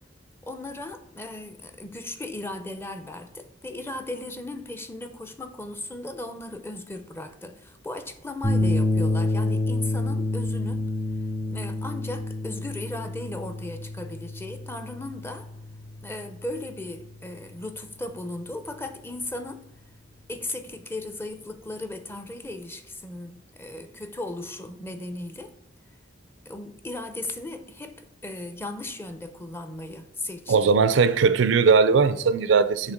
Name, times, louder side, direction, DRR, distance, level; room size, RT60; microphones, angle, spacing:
voice 1, 0.4-10.9 11.5-15.5 16.0-19.7 20.3-25.5 26.5-30.7, left 2 dB, 15° left, 0.5 m, -37 dB
sound 1, 8.4-16.9, left 2 dB, 35° left, 2.0 m, -28 dB
voice 2, 30.5-32.9, right 5 dB, 85° right, 0.4 m, -19 dB
6.6 x 2.9 x 5.1 m
head